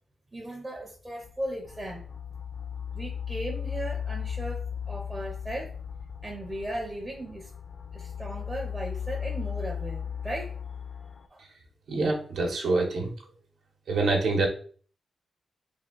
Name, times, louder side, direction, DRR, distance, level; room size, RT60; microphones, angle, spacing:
voice 1, 0.3-2.1 2.9-5.7 6.2-7.5 7.9-10.5 11.3-11.4, right 1 dB, 15° right, 0 dB, 0.5 m, -37 dB
sound 1, 1.2-11.2, left 8 dB, 45° left, 0.4 m, -36 dB
voice 2, 11.9-13.1 13.9-14.5, right 3 dB, 75° right, 0 dB, 0.9 m, -25 dB
3.5 x 2.7 x 3.7 m, 0.43 s
wide cardioid pair, 175°, 0 cm